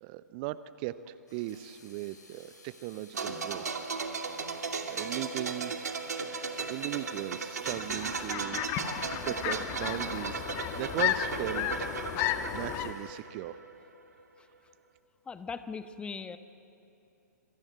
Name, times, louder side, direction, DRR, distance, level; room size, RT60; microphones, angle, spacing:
voice 1, 0.0-3.6 4.4-6.0 6.7-10.4 10.7-11.9 12.5-13.6, right 15 dB, 30° right, 15 dB, 0.7 m, -38 dB
sound 1, 1.3-13.2, left 3 dB, 75° left, 5.1 m, -57 dB
sound 2, 3.1-13.8 14.0-14.2, right 4 dB, 65° right, 2.6 m, -36 dB
sound 3, 7.7-12.9, left 12 dB, 30° left, 1.4 m, -33 dB
voice 2, 15.3-16.4, left 5 dB, 10° left, 11 dB, 1.0 m, -39 dB
26.0 x 23.0 x 9.0 m, 2.9 s
figure-of-eight pair, 120°, 10 cm